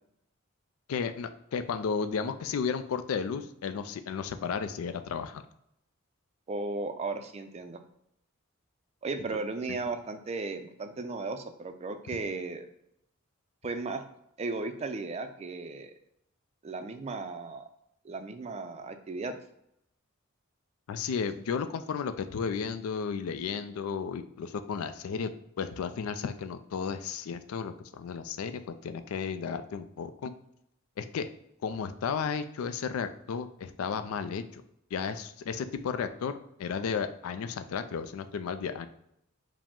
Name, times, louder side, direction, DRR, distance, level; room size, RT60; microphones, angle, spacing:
voice 1, 0.9-5.4 9.7-9.8 20.9-25.3 25.6-30.3 31.0-31.3 31.6-34.6 34.9-38.9, left 6 dB, 85° left, 11 dB, 0.4 m, -33 dB
voice 2, 6.5-7.8 9.0-12.6 13.6-14.1 14.4-15.9 16.6-17.6 18.0-19.4, right 3 dB, 30° right, 8 dB, 0.4 m, -35 dB
4.8 x 2.1 x 3.6 m, 0.77 s
head